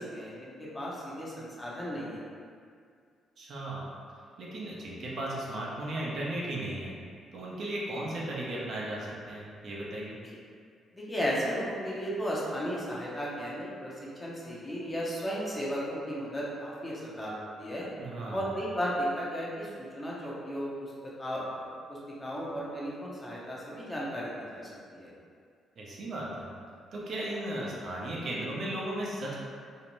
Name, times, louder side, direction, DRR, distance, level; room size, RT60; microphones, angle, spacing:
voice 1, 0.0-2.2 10.2-10.4 10.9-13.9 14.2-17.9 18.3-20.9 21.2-25.1, equal, 20° left, -6 dB, 0.6 m, -35 dB
voice 2, 3.4-3.9 4.4-6.9 7.3-10.2 18.0-18.5 25.8-26.5 26.9-29.4, right 1 dB, 60° right, -5 dB, 0.5 m, -36 dB
2.5 x 2.1 x 3.0 m, 2.2 s
cardioid pair, 90°, 0 cm